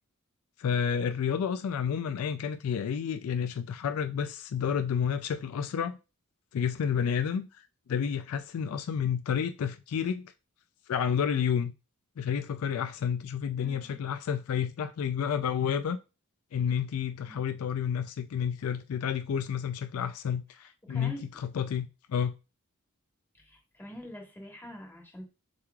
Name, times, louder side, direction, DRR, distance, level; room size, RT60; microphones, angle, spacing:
voice 1, 0.6-6.0 6.5-10.3 10.9-11.7 12.2-16.0 16.5-22.4, left 7 dB, 70° left, 0.3 m, -30 dB
voice 2, 13.6-14.0 17.3-17.4 20.8-21.2 23.3-25.3, left 1 dB, 10° left, 1.3 m, -45 dB
6.8 x 3.1 x 2.3 m
head